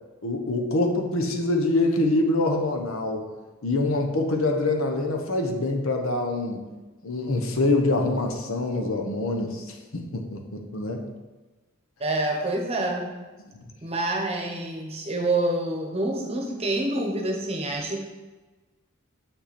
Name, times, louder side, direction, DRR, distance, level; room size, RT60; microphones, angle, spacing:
voice 1, 0.2-3.3 3.6-6.6 7.0-11.0 13.4-13.5, left 2 dB, 75° left, 3 dB, 1.0 m, -25 dB
voice 2, 12.0-13.1 13.8-18.0, right 2 dB, 30° right, 1 dB, 1.0 m, -27 dB
7.3 x 5.6 x 4.3 m, 1.2 s
head